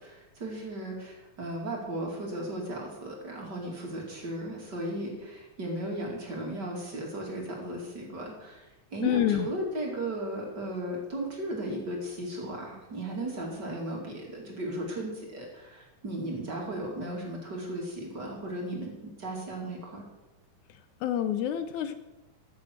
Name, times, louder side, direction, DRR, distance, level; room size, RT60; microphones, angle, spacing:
voice 1, 0.0-18.9 19.2-20.0, right 1 dB, 35° right, -1 dB, 2.8 m, -36 dB
voice 2, 9.0-9.5 21.0-21.9, left 10 dB, 75° left, 10 dB, 2.0 m, -27 dB
15.0 x 7.7 x 6.5 m, 1.0 s
omnidirectional pair, 3.6 m